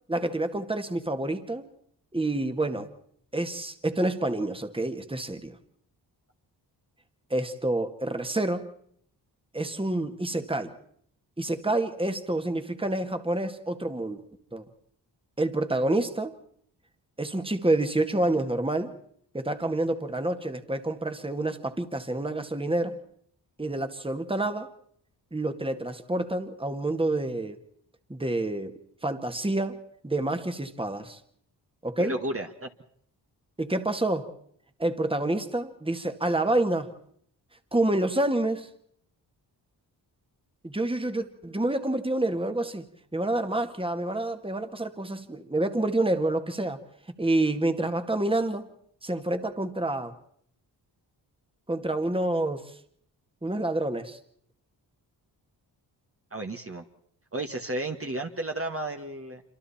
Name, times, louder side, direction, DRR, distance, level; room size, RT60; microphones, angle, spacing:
voice 1, 0.1-1.7 2.1-2.9 3.3-5.6 7.3-8.7 9.5-10.7 11.4-14.2 14.5-14.6 15.4-16.4 17.2-18.9 19.3-23.0 23.6-24.7 25.3-27.6 28.1-31.2 31.8-32.2 33.6-34.3 34.8-36.9 37.7-38.7 40.6-42.8 43.1-46.8 47.2-48.7 49.0-50.1 51.7-52.6 53.4-54.2, right 2 dB, 10° right, 8 dB, 2.1 m, -28 dB
voice 2, 32.0-32.7 56.3-56.8 57.3-59.4, right 2 dB, 30° right, 4 dB, 1.9 m, -33 dB
26.5 x 25.0 x 4.4 m, 0.66 s
cardioid pair, 50°, 43 cm